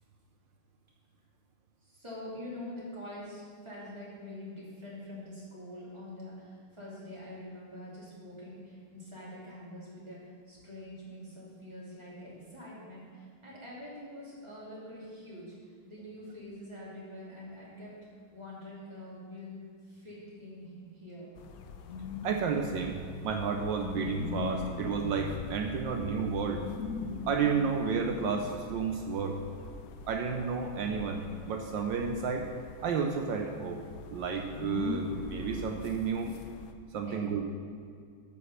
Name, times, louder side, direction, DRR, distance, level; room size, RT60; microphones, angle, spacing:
voice 1, 1.8-17.9 18.3-19.5 19.8-21.3 37.0-37.2, left 1 dB, 15° right, -8 dB, 2.7 m, -45 dB
sound 1, 21.4-36.7, left 5 dB, 80° left, 0.8 m, -41 dB
voice 2, 22.2-26.7 27.3-29.4 30.1-32.5 32.8-36.3 36.9-37.5, right 5 dB, 70° right, 4 dB, 1.3 m, -31 dB
9.4 x 5.5 x 6.5 m, 2.2 s
omnidirectional pair, 2.2 m